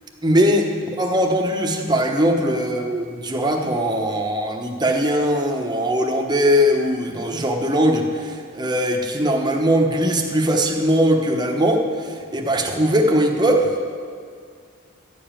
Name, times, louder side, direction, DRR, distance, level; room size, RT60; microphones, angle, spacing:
voice 1, 0.2-0.7 1.0-13.8, equal, 20° right, 2 dB, 1.0 m, -20 dB
12.5 x 5.1 x 8.9 m, 2.1 s
head